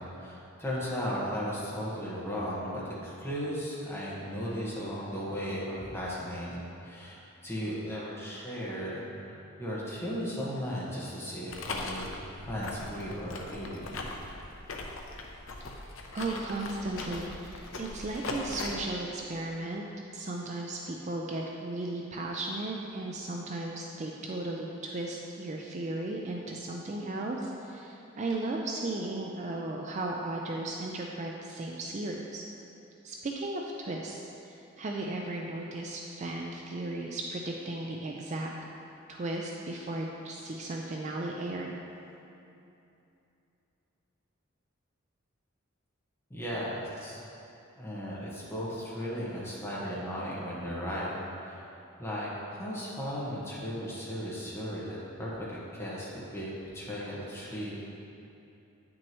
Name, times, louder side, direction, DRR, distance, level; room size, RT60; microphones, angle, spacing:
voice 1, 0.0-14.1 46.3-47.2 47.8-51.1 51.4-51.6 52.0-57.9, equal, 10° left, -7 dB, 1.4 m, -36 dB
sound 1, 11.5-18.7, left 2 dB, 70° left, 0.7 m, -40 dB
voice 2, 16.1-19.8 20.1-32.4 33.0-38.5 39.1-41.7, right 2 dB, 35° right, 0 dB, 0.4 m, -35 dB
8.9 x 6.1 x 3.0 m, 2.8 s
head